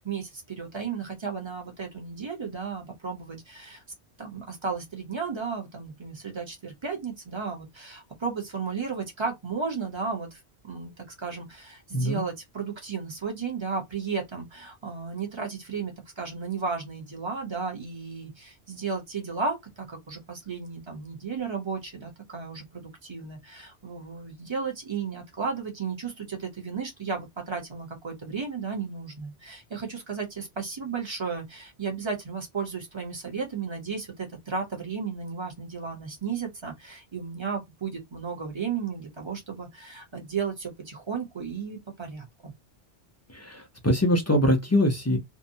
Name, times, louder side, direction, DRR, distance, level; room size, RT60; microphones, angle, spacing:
voice 1, 0.0-3.8 4.2-42.5, right 5 dB, 30° right, 0.8 m, -34 dB
voice 2, 11.9-12.2 43.3-45.2, left 1 dB, 25° left, 0.3 m, -23 dB
2.7 x 2.1 x 2.6 m
omnidirectional pair, 1.1 m